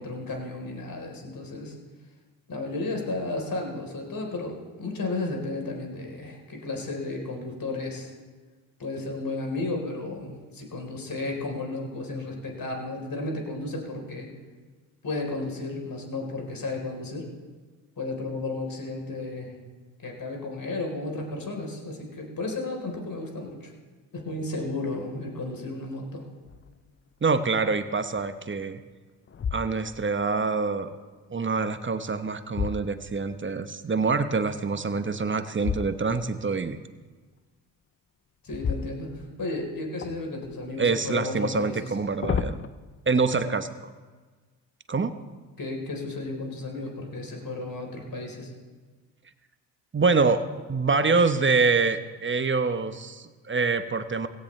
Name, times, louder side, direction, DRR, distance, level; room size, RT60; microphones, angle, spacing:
voice 1, 0.0-1.8 2.5-8.1 8.8-14.3 15.0-17.3 18.0-19.5 20.0-23.7 24.1-26.2 38.4-42.0 45.6-48.5, left 2 dB, 40° left, 1 dB, 4.1 m, -33 dB
sound 1, 26.5-26.9 27.4-27.5 28.2-28.7 29.3-30.2 31.8-33.5 35.6-36.4 38.5-39.6 40.0-40.8 41.8-42.7, left 6 dB, 25° left, 0.7 m, -33 dB
voice 2, 27.2-28.8 29.5-31.0 31.3-36.8 40.8-42.6 43.1-43.9 44.9-45.1 49.9-54.3, right 4 dB, 25° right, 10 dB, 1.1 m, -25 dB
17.0 x 17.0 x 3.3 m, 1.4 s
hypercardioid pair, 45°, 50 cm